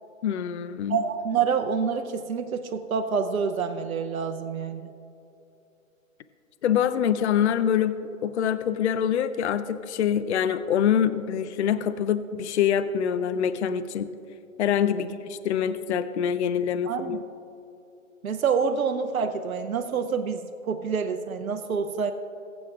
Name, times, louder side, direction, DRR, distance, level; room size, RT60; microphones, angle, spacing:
voice 1, 0.2-1.0 6.6-14.1 14.6-17.2, left 8 dB, 55° left, 13 dB, 0.5 m, -25 dB
voice 2, 0.9-4.9 15.0-15.1 16.9-17.2 18.2-22.1, right 6 dB, 85° right, 7 dB, 0.8 m, -27 dB
21.0 x 8.2 x 2.5 m, 2.8 s
hypercardioid pair, 150°, 41 cm